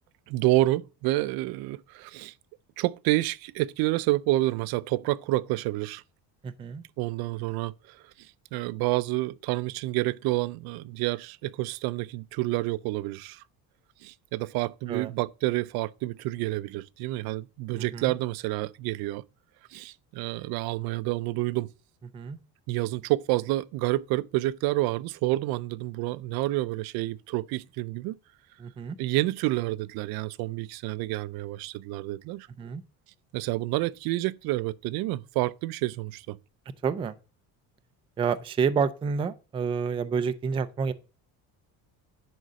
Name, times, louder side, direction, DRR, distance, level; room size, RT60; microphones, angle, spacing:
voice 1, 0.3-2.3 2.8-6.0 7.0-13.4 14.0-19.2 19.7-21.7 22.7-28.2 29.0-32.5 33.3-36.4, right 18 dB, 75° right, 0.5 m, -29 dB
voice 2, 6.4-6.8 14.9-15.1 17.7-18.1 22.1-22.4 28.6-29.0 32.6-32.8 36.8-37.1 38.2-40.9, right 6 dB, 15° right, 0.3 m, -29 dB
10.5 x 3.9 x 6.2 m
cardioid pair, 170°, 37 cm